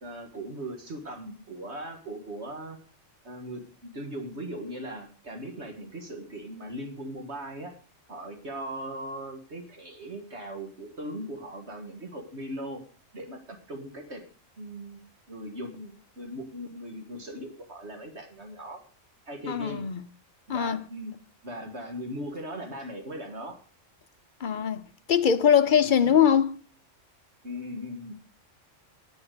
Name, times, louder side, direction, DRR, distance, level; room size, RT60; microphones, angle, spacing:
voice 1, 0.0-2.8 3.2-7.7 8.1-12.8 13.1-14.2 14.6-15.0 15.3-18.8 19.3-19.8 20.5-21.1 21.4-23.6 25.9-26.1 27.4-28.1, right 1 dB, 60° right, 2.0 m, -39 dB
voice 2, 19.5-20.0 20.5-20.8 24.4-26.6, left 8 dB, 50° left, 0.7 m, -22 dB
9.6 x 9.4 x 6.6 m
omnidirectional pair, 1.3 m